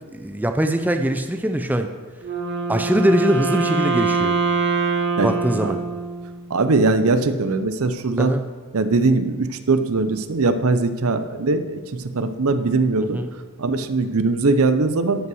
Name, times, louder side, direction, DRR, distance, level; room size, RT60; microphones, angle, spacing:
voice 1, 0.1-1.9 2.7-4.4 5.2-5.8 8.2-8.4 13.0-13.3, right 1 dB, 5° right, 7 dB, 0.4 m, -22 dB
Wind instrument woodwind instrument, 2.2-6.5, right 4 dB, 55° right, 1.4 m, -23 dB
voice 2, 6.5-8.3 8.7-11.8 12.1-13.2 13.6-15.3, right 3 dB, 70° right, 11 dB, 0.7 m, -20 dB
12.5 x 5.6 x 6.3 m, 1.5 s
head